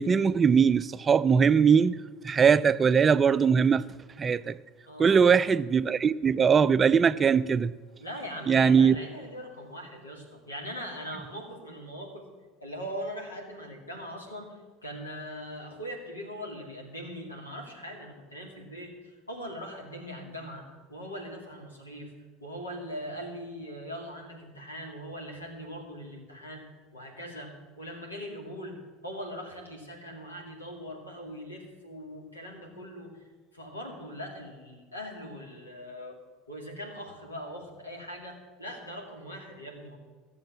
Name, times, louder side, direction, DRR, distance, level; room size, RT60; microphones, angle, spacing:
voice 1, 0.0-2.0 2.2-3.8 4.2-4.6 5.0-7.7 8.5-9.0, right 6 dB, 25° right, 0.4 m, -21 dB
voice 2, 4.9-5.4 8.0-12.3 12.6-22.1 22.4-26.6 26.9-33.2 33.5-36.2 36.5-40.0, equal, 85° left, 2.4 m, -41 dB
14.5 x 7.1 x 7.4 m
figure-of-eight pair, 70°, 0 cm